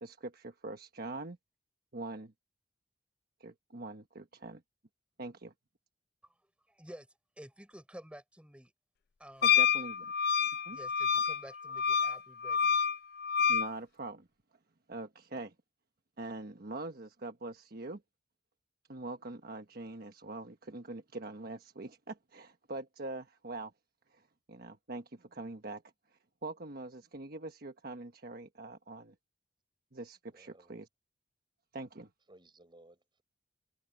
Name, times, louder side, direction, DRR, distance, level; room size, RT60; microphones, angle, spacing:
voice 1, 0.0-1.4 1.9-2.3 3.4-4.6 5.2-5.5 9.4-10.1 10.7-10.8 13.5-14.3 14.9-15.5 16.2-18.0 18.9-23.7 24.1-24.2 24.5-25.8 26.4-29.1 29.9-30.9 31.7-32.1, right 2 dB, 55° right, 1.3 m, -43 dB
voice 2, 6.7-7.1 7.4-8.7 9.2-9.6 10.7-12.8, equal, 5° right, 5.6 m, -51 dB
Wind instrument woodwind instrument, 9.4-13.7, left 7 dB, 60° left, 0.4 m, -28 dB
voice 3, 30.3-30.7 32.3-33.2, right 1 dB, 25° right, 6.9 m, -59 dB
head